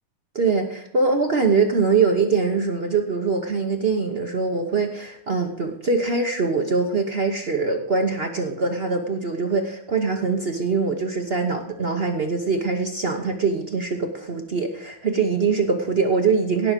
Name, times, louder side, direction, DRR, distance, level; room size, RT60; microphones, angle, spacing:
voice 1, 0.3-16.7, right 4 dB, 50° right, 5 dB, 0.7 m, -23 dB
17.0 x 6.1 x 5.1 m, 0.73 s
omnidirectional pair, 2.2 m